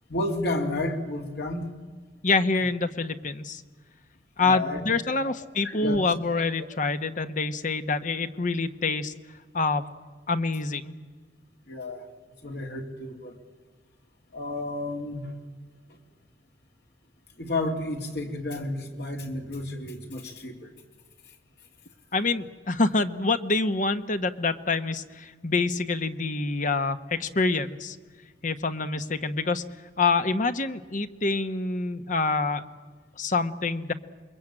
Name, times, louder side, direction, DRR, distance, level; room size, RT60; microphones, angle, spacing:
voice 1, 0.1-1.7 4.4-5.3 5.6-6.1 6.6-6.7 11.6-12.1 12.4-13.4 14.3-15.3 15.9-16.0 17.4-20.7 21.3-21.4, left 2 dB, 65° left, 3 dB, 3.3 m, -32 dB
voice 2, 2.2-3.6 4.4-9.1 9.5-9.8 10.3-10.9 22.1-28.0 28.4-29.6 30.0-32.6 33.2-33.9, left 3 dB, 45° left, 10 dB, 1.1 m, -26 dB
28.0 x 22.5 x 8.9 m, 1.4 s
head